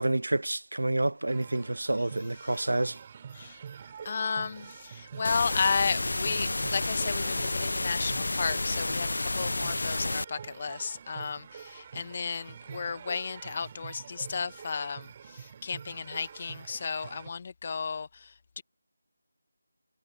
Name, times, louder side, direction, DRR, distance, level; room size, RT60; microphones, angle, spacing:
voice 1, 0.0-3.0, right 2 dB, 75° right, 0.5 m, -28 dB
sound 1, 1.3-17.3, right 7 dB, 25° right, 3.5 m, -46 dB
voice 2, 4.0-18.6, left 5 dB, 35° left, 1.6 m, -33 dB
sound 2, 5.2-10.2, left 2 dB, 65° left, 0.5 m, -30 dB
figure-of-eight pair, 165°, 0 cm